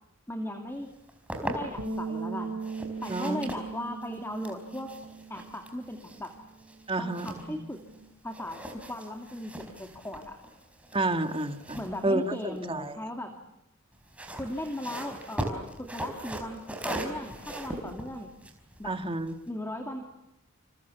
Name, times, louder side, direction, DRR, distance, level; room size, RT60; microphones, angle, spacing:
voice 1, 0.3-0.9 1.4-2.6 3.0-4.9 5.3-6.3 7.0-7.8 8.2-10.4 11.8-13.4 14.3-18.3 18.8-19.0 19.5-20.0, left 1 dB, 10° left, 4 dB, 2.5 m, -37 dB
sound 1, 0.9-2.0 2.6-8.0 8.3-12.9 13.9-19.5, right 1 dB, 5° right, 4.5 m, -40 dB
Bass guitar, 1.8-8.0, right 4 dB, 80° right, 2.6 m, -39 dB
voice 2, 3.1-3.5 6.9-7.6 10.9-13.0 18.9-19.4, right 2 dB, 25° right, 7 dB, 2.0 m, -30 dB
30.0 x 28.0 x 7.1 m, 0.86 s
head